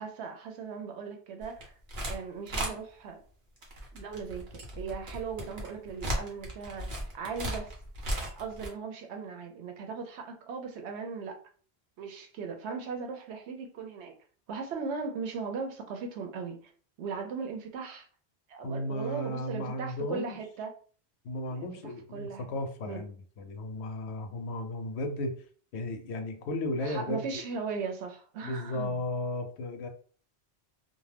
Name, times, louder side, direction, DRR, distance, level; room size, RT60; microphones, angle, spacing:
voice 1, 0.0-1.7 2.1-3.2 3.9-7.7 8.2-11.4 12.0-14.1 14.5-16.6 17.0-18.1 18.5-20.7 21.5-21.7 22.1-22.5 22.9-23.0 26.8-28.9, right 5 dB, 90° right, 0.9 m, -38 dB
sound 1, 1.4-2.2 2.5-2.7 3.6-8.7, right 1 dB, 55° right, 0.9 m, -36 dB
voice 2, 18.6-20.4 21.2-25.4 25.7-27.4 28.4-29.9, left 1 dB, 90° left, 0.9 m, -35 dB
2.6 x 2.2 x 3.2 m
omnidirectional pair, 1.1 m